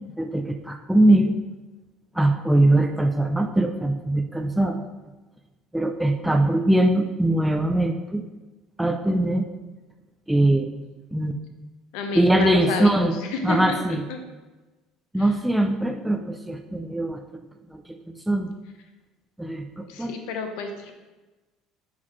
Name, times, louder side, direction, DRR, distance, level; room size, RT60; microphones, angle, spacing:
voice 1, 0.2-1.4 2.2-4.8 5.7-8.2 8.8-9.5 10.3-10.7 11.1-11.3 12.1-13.1 13.4-14.0 15.1-17.2 17.7-17.8 18.3-18.5 19.4-20.2, right 1 dB, 5° right, 3 dB, 0.3 m, -21 dB
voice 2, 11.9-14.2 15.2-15.3 19.9-20.9, left 3 dB, 80° left, 5 dB, 0.9 m, -30 dB
6.2 x 5.7 x 3.1 m, 1.2 s
cardioid pair, 145°, 0 cm